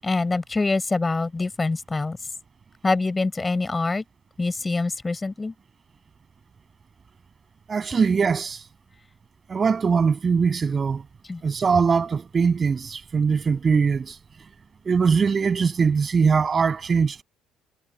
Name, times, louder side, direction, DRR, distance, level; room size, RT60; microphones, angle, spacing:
voice 1, 0.0-2.2 2.8-4.0 4.4-5.5 11.3-11.4, left 3 dB, 20° left, 7.1 m, -25 dB
voice 2, 7.7-8.6 9.5-11.0 11.4-14.2 14.9-17.2, right 5 dB, 35° right, 6.9 m, -21 dB
supercardioid pair, 90°, 0 cm